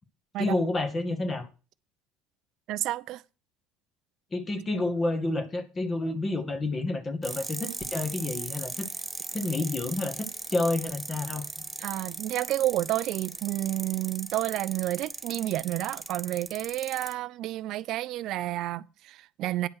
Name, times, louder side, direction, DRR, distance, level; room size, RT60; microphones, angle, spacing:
voice 1, 0.4-1.5 4.3-8.9 9.3-11.7, left 2 dB, 30° left, 1.9 m, -29 dB
voice 2, 2.7-3.2 11.8-19.7, right 15 dB, 60° right, 0.5 m, -30 dB
sound 1, 7.2-17.1, right 2 dB, 15° right, 0.9 m, -38 dB
9.5 x 5.5 x 6.3 m
supercardioid pair, 90°, 0 cm